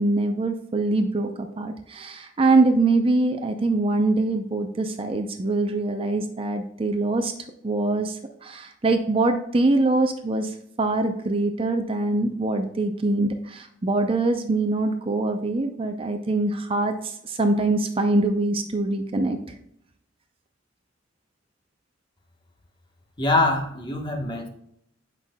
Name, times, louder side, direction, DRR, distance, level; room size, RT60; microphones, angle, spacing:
voice 1, 0.0-7.3 7.6-19.4, right 2 dB, 30° right, 6 dB, 0.5 m, -23 dB
voice 2, 23.2-24.5, left 2 dB, 25° left, 1 dB, 1.2 m, -23 dB
8.3 x 5.5 x 2.2 m, 0.74 s
head